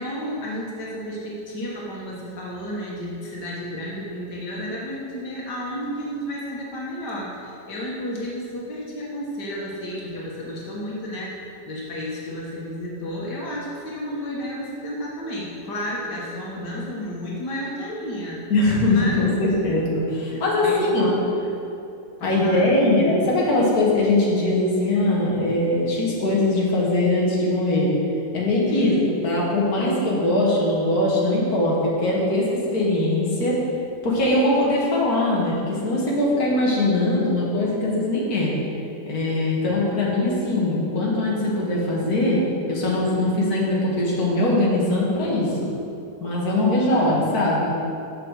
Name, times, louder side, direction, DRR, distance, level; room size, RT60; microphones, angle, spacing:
voice 1, 0.0-18.4 18.9-19.3 20.3-21.5 22.2-22.7 28.7-29.0, equal, 90° left, -4 dB, 2.2 m, -32 dB
voice 2, 18.5-21.1 22.2-27.9 28.3-28.9 29.2-33.6 34.0-38.5 39.0-42.4 42.7-45.5 46.2-47.7, left 2 dB, 65° left, -5 dB, 2.2 m, -21 dB
7.5 x 7.4 x 6.4 m, 2.8 s
omnidirectional pair, 1.8 m